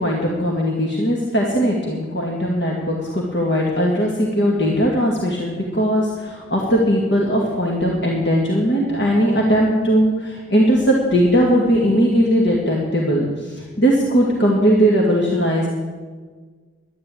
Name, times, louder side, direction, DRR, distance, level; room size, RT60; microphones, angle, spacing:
voice 1, 0.0-15.7, equal, 55° left, -2 dB, 2.1 m, -19 dB
11.5 x 11.0 x 8.6 m, 1.5 s
head